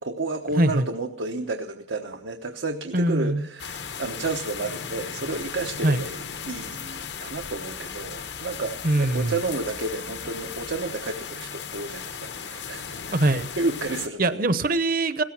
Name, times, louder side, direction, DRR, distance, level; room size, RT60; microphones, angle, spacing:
voice 1, 0.0-13.2 13.6-14.4, right 3 dB, 90° right, 4 dB, 1.1 m, -31 dB
voice 2, 0.6-0.9 2.9-3.5 5.8-6.0 8.8-9.4 13.1-13.5 14.2-15.2, right 2 dB, 50° right, 13 dB, 0.9 m, -22 dB
sound 1, 3.6-14.1, left 6 dB, 70° left, 1.0 m, -36 dB
17.0 x 14.0 x 6.0 m, 0.73 s
head